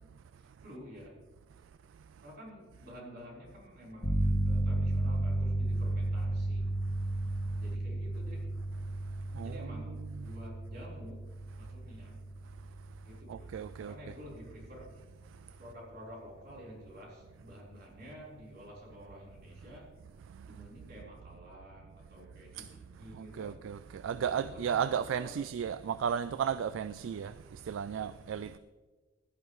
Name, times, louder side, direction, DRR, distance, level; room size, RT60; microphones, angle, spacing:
voice 1, 0.4-1.2 2.2-6.7 7.6-8.5 9.4-11.3 11.6-12.2 13.0-15.0 15.6-19.9 20.4-23.6 24.2-25.5, equal, 50° right, 4.0 m, -50 dB
sound 1, 4.0-14.6, right 1 dB, 50° left, 2.0 m, -33 dB
voice 2, 9.3-10.3 13.3-13.9 22.5-22.7 23.1-28.6, right 8 dB, 70° right, 0.3 m, -35 dB
16.5 x 11.0 x 3.1 m
head